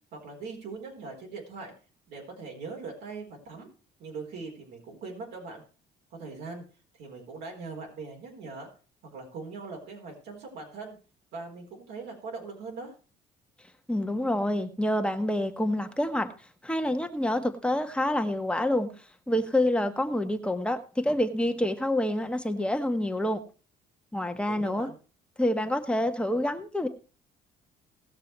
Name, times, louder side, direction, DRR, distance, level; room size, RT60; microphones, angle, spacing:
voice 1, 0.1-1.7 2.1-3.7 4.0-5.6 6.1-6.6 7.0-8.7 9.1-11.0 11.3-12.9 24.5-25.0, right 4 dB, 80° right, 0 dB, 4.2 m, -41 dB
voice 2, 13.9-16.3 16.6-18.9 19.3-23.4 24.1-24.9 25.4-26.9, left 1 dB, 5° left, 6 dB, 1.4 m, -27 dB
18.0 x 6.7 x 4.6 m, 0.36 s
cardioid pair, 110°, 17 cm